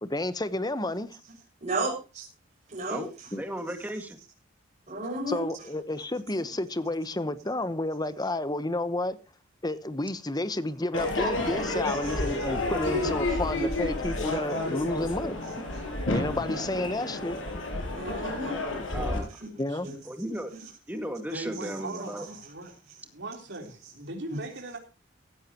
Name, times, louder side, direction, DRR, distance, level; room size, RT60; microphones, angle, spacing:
voice 1, 0.0-1.2 3.3-3.4 5.3-9.2 9.6-15.4 16.1-17.4 19.6-19.9, left 2 dB, 20° left, 1.1 m, -31 dB
voice 2, 1.6-2.3 2.7-3.0 4.9-5.4 11.9-12.1 13.0-13.1 17.9-18.6 19.4-19.5 19.8-19.9 24.3-24.4, right 2 dB, 35° right, 6.4 m, -33 dB
voice 3, 3.4-4.2 18.9-19.4 20.1-20.5 20.9-22.3, equal, 10° right, 2.1 m, -35 dB
Crowd / Fireworks, 10.9-19.2, left 2 dB, 80° left, 6.2 m, -30 dB
voice 4, 21.3-22.7 23.0-24.8, right 2 dB, 60° right, 3.9 m, -39 dB
16.5 x 14.5 x 3.0 m
head